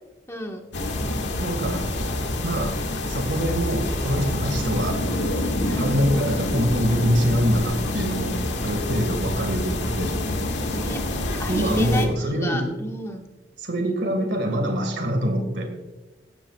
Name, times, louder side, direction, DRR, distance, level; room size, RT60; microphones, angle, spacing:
voice 1, 0.3-0.6 5.6-6.0 10.5-11.0 11.4-13.3, left 1 dB, 15° left, 2 dB, 1.5 m, -32 dB
sound 1, 0.7-12.1, left 1 dB, 85° left, 1.8 m, -27 dB
voice 2, 1.4-1.8 2.4-5.0 5.7-10.2 11.5-12.6 13.6-15.7, equal, 80° right, 4 dB, 2.0 m, -24 dB
16.0 x 13.5 x 2.4 m, 1.1 s
head